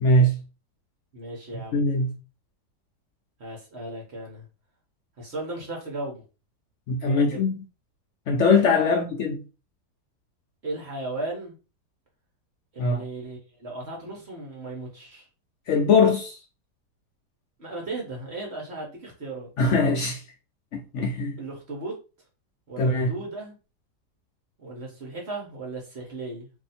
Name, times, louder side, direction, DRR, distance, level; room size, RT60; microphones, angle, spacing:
voice 1, 0.0-0.4 1.7-2.1 6.9-7.6 8.3-9.4 12.8-13.0 15.7-16.4 19.6-20.2 20.7-21.4 22.8-23.1, left 3 dB, 65° left, 0.7 m, -21 dB
voice 2, 1.1-1.8 3.4-4.5 5.2-6.2 7.1-7.4 8.9-9.0 10.6-11.6 12.7-15.3 17.6-19.5 21.4-21.9 22.7-23.5 24.6-26.5, right 2 dB, 45° right, 1.2 m, -36 dB
2.8 x 2.7 x 4.1 m
omnidirectional pair, 1.8 m